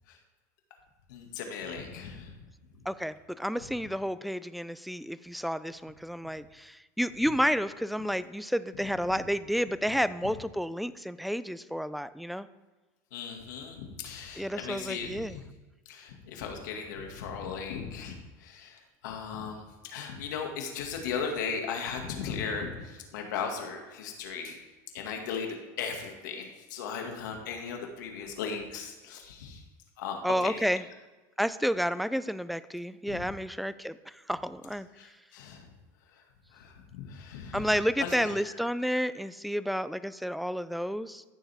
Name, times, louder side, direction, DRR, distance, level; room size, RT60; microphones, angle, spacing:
voice 1, 1.1-2.4 13.1-15.4 15.9-24.6 24.9-29.6 30.0-30.5 33.1-33.2 35.0-35.6 36.5-37.6 38.0-38.3, left 6 dB, 90° left, 3 dB, 2.0 m, -37 dB
voice 2, 2.9-12.5 14.4-15.4 30.2-30.8 31.4-34.9 37.5-41.2, equal, ahead, 14 dB, 0.3 m, -31 dB
14.5 x 7.1 x 3.5 m, 1.2 s
supercardioid pair, 130°, 10 cm